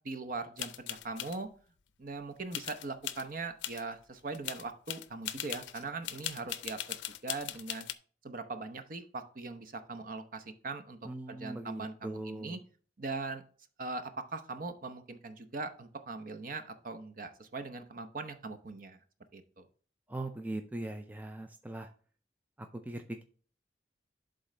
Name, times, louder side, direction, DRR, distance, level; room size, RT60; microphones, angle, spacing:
voice 1, 0.0-1.5 2.0-7.9 8.2-11.0 11.3-12.6 13.0-13.4 13.8-19.0 19.3-19.7, right 3 dB, 50° right, 8 dB, 0.8 m, -40 dB
sound 1, 0.6-1.4 2.5-3.2 3.6-3.8 4.2-7.9, left 12 dB, 85° left, 0.5 m, -39 dB
voice 2, 11.0-12.6 20.1-21.9 22.6-23.2, right 1 dB, 10° right, 6 dB, 0.4 m, -40 dB
11.5 x 3.9 x 3.3 m, 0.42 s
head